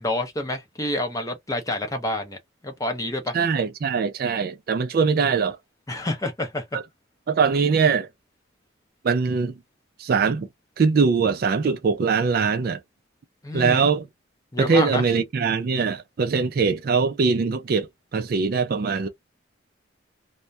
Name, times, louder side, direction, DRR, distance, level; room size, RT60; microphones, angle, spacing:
voice 1, 0.0-2.4 2.6-3.4 5.9-6.8 13.4-13.8 14.5-15.0, left 1 dB, 15° left, 0.6 m, -28 dB
voice 2, 3.3-5.6 6.7-6.8 7.3-8.1 9.0-9.5 10.0-10.5 10.8-12.8 13.5-14.1 14.6-17.9 18.1-19.1, right 5 dB, 45° right, 0.3 m, -22 dB
2.2 x 2.1 x 2.6 m
head